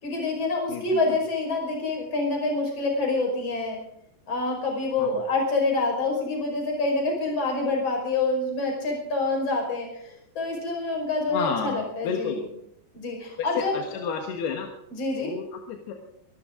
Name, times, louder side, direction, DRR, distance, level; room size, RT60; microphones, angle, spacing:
voice 1, 0.0-3.8 4.3-12.4 12.9-13.8 14.9-15.3, left 3 dB, 35° left, 0 dB, 6.0 m, -27 dB
voice 2, 0.7-1.2 5.0-5.2 11.3-12.4 13.5-14.7 15.2-15.9, left 6 dB, 70° left, 3 dB, 3.3 m, -31 dB
26.0 x 13.0 x 3.8 m, 0.76 s
omnidirectional pair, 5.0 m